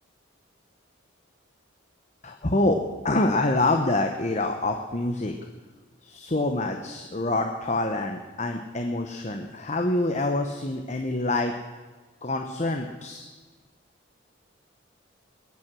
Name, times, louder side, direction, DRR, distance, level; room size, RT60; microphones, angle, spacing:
voice 1, 2.2-2.8 3.0-5.3 6.0-11.5 12.2-13.3, left 2 dB, 35° left, 4 dB, 0.9 m, -26 dB
21.0 x 9.6 x 6.2 m, 1.3 s
head